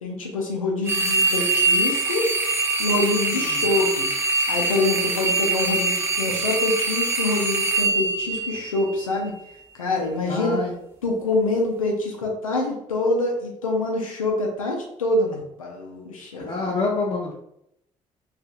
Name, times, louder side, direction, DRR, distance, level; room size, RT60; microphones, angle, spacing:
voice 1, 0.0-2.3 2.8-4.1 4.5-9.3 9.8-10.6 11.0-16.7, left 2 dB, 85° left, 0 dB, 0.5 m, -25 dB
sound 1, 0.9-9.0, right 3 dB, 15° right, 0.5 m, -23 dB
voice 2, 10.3-10.7 16.4-17.3, left 3 dB, 30° left, -4 dB, 0.6 m, -27 dB
2.7 x 2.4 x 2.4 m, 0.78 s
figure-of-eight pair, 45°, 17 cm